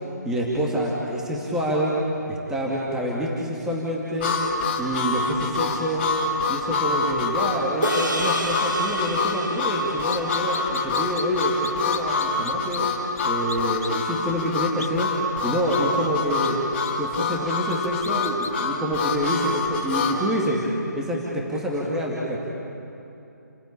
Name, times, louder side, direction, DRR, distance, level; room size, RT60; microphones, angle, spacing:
voice 1, 0.2-1.9 2.3-4.3 4.8-6.1 6.5-12.9 13.2-15.1 15.4-16.6 17.0-20.6 21.0-22.4, equal, 5° right, -4 dB, 2.4 m, -27 dB
Harmonica, 4.2-20.2, left 4 dB, 35° left, 2.9 m, -26 dB
sound 1, 7.8-12.4, right 1 dB, 85° right, 2.8 m, -31 dB
sound 2, 10.1-12.8 13.2-13.3 13.5-13.9 14.8-14.9 15.7-15.8 16.4-16.5 16.8-16.9 17.7-18.5, left 5 dB, 50° left, 1.4 m, -36 dB
30.0 x 16.0 x 8.7 m, 2.8 s
figure-of-eight pair, 145°, 10 cm